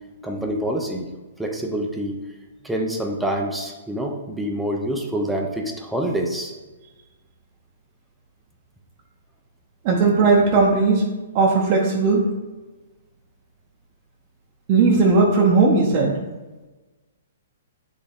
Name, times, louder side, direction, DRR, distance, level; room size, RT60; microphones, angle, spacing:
voice 1, 0.2-1.1 1.4-2.2 2.6-6.5 10.0-10.1, right 1 dB, 5° right, 1 dB, 0.7 m, -26 dB
voice 2, 9.8-11.0 11.3-12.2 14.7-16.2, right 4 dB, 35° right, -2 dB, 0.8 m, -17 dB
7.6 x 3.7 x 3.5 m, 1.2 s
hypercardioid pair, 150°, 0 cm